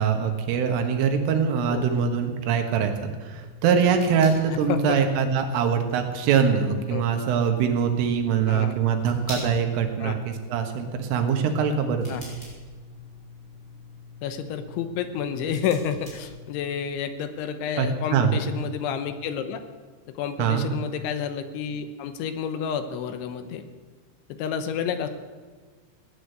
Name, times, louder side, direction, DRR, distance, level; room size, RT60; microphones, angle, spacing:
voice 1, 0.0-2.9 3.2-12.3 17.8-18.3 20.4-20.7, right 7 dB, 85° right, 5 dB, 4.2 m, -23 dB
sound 1, 3.4-16.9, left 3 dB, 20° left, 5.0 m, -44 dB
voice 2, 4.5-5.0 6.9-7.0 8.5-8.8 10.0-10.2 12.1-12.2 14.2-19.6 20.2-23.6 24.4-25.1, left 8 dB, 80° left, 9 dB, 3.3 m, -30 dB
17.5 x 10.0 x 8.0 m, 1.4 s
omnidirectional pair, 5.6 m